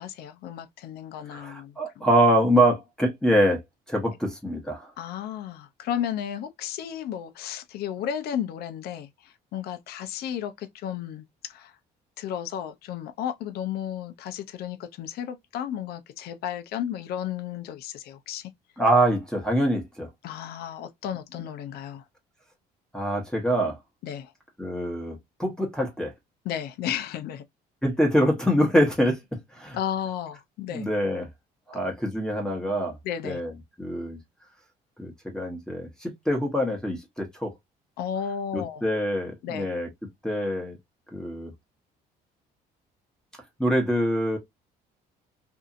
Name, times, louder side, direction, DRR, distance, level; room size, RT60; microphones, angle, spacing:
voice 1, 0.0-2.1 5.0-11.7 12.2-18.5 20.2-22.0 24.0-24.3 26.5-27.4 29.7-30.9 33.0-33.4 38.0-38.8 39.4-39.7, left 9 dB, 70° left, 0.5 m, -33 dB
voice 2, 1.3-3.6 3.9-4.9 18.8-20.1 22.9-23.8 24.6-26.1 27.8-29.8 30.7-31.3 31.7-33.0 33.2-33.5 33.8-34.2 35.0-37.5 38.5-39.9 40.2-40.8 41.1-41.5 43.6-44.4, equal, 5° left, 0.9 m, -25 dB
2.7 x 2.5 x 2.4 m
cardioid pair, 110°, 17 cm